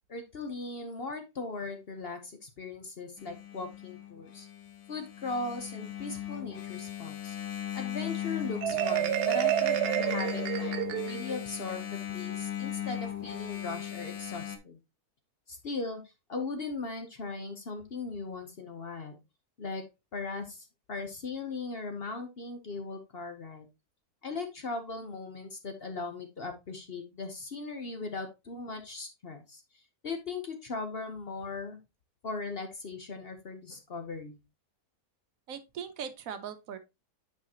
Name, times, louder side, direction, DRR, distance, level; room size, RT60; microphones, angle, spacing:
voice 1, 0.1-4.5 4.9-7.4 7.7-14.8 15.5-19.2 19.6-19.8 20.1-23.7 24.2-31.8 32.2-34.4, left 3 dB, 45° left, 0.9 m, -38 dB
Engine, 3.2-14.6, left 11 dB, 80° left, 1.3 m, -38 dB
Marimba xylophone, 8.6-11.4, right 13 dB, 90° right, 1.2 m, -29 dB
voice 2, 35.5-36.8, right 7 dB, 65° right, 1.0 m, -39 dB
8.2 x 4.8 x 2.8 m
omnidirectional pair, 1.6 m